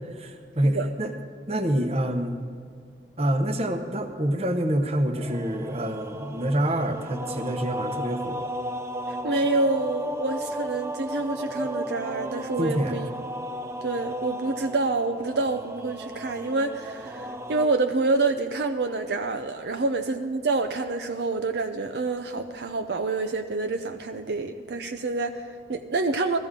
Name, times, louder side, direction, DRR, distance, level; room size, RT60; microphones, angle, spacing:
voice 1, 0.1-1.1 1.5-2.4 3.2-8.5 12.6-13.0, right 1 dB, 35° right, 6 dB, 0.9 m, -26 dB
sound 1, 5.1-17.7, equal, 15° right, 0.4 m, -35 dB
voice 2, 9.1-13.1 13.8-26.4, right 3 dB, 70° right, 6 dB, 0.6 m, -27 dB
15.0 x 14.0 x 3.7 m, 2.2 s
head